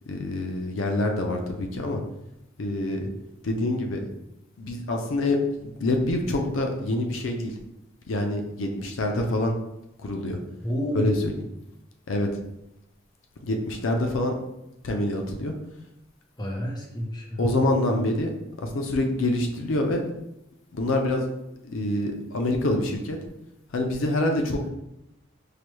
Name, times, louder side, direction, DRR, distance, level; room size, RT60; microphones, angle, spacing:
voice 1, 0.1-2.0 2.6-3.1 3.4-4.1 4.6-5.4 5.6-7.5 8.1-9.6 10.0-10.4 10.9-11.3 12.1-12.3 13.4-14.3 14.8-15.5 17.4-18.3 18.6-20.0 20.7-21.2 21.6-23.2 23.7-24.7, left 1 dB, 85° left, 3 dB, 0.5 m, -26 dB
voice 2, 10.6-11.2 16.4-17.5, equal, 20° left, -1 dB, 0.7 m, -30 dB
4.8 x 2.2 x 3.0 m, 0.88 s
head